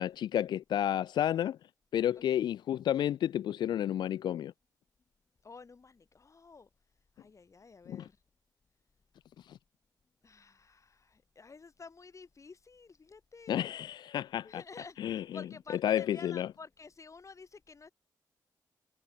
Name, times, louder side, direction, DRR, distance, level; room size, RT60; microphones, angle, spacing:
voice 1, 0.0-1.6 1.9-4.5 7.9-8.1 9.4-9.6 13.5-14.6 15.0-15.4 15.8-16.5, left 11 dB, 85° left, 0.4 m, -31 dB
voice 2, 5.4-6.7 7.2-8.2 10.2-13.6 14.4-17.9, left 4 dB, 45° left, 4.0 m, -51 dB
cardioid pair, 65°, 7 cm